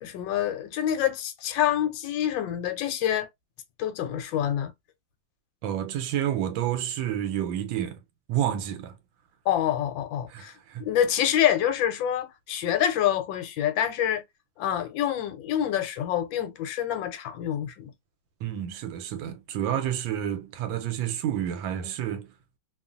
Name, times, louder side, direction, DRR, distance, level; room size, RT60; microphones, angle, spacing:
voice 1, 0.0-3.3 3.8-4.7 9.5-10.5 10.8-14.2 14.6-17.9, left 10 dB, 85° left, 1.4 m, -26 dB
voice 2, 5.6-8.0 8.3-9.0 10.3-10.8 18.4-22.3, right 10 dB, 85° right, 1.3 m, -29 dB
2.9 x 2.4 x 2.4 m
omnidirectional pair, 2.1 m